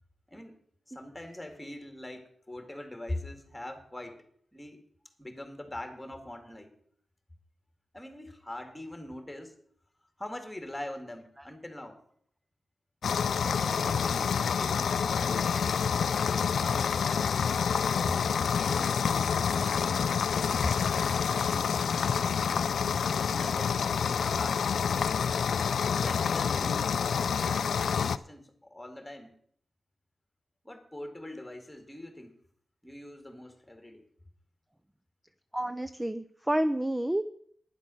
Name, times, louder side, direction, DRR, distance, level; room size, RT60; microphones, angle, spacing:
voice 1, 0.3-0.6 0.9-4.3 4.5-4.8 5.2-6.8 7.9-9.6 10.2-12.0 13.6-15.5 16.2-17.4 17.8-20.1 20.6-22.8 23.3-23.9 24.2-24.7 25.8-29.3 30.6-32.4 32.8-34.1, left 1 dB, 10° left, 6 dB, 2.2 m, -42 dB
sound 1, 13.0-28.2, left 6 dB, 85° left, 0.4 m, -28 dB
voice 2, 35.5-37.2, right 1 dB, 10° right, 11 dB, 0.5 m, -29 dB
11.5 x 9.9 x 6.3 m, 0.63 s
wide cardioid pair, 115°, 0 cm